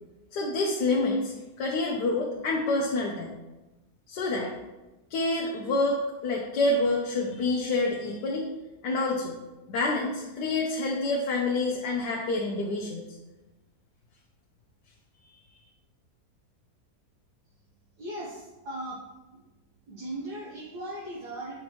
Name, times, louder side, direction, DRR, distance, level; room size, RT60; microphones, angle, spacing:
voice 1, 0.3-3.3 4.1-4.5 5.1-8.5 8.8-9.4 9.7-13.0, left 2 dB, 85° left, -1 dB, 1.4 m, -27 dB
voice 2, 18.0-19.0 19.9-21.5, right 1 dB, 75° right, -6 dB, 1.9 m, -38 dB
7.8 x 5.2 x 3.0 m, 1.1 s
omnidirectional pair, 1.7 m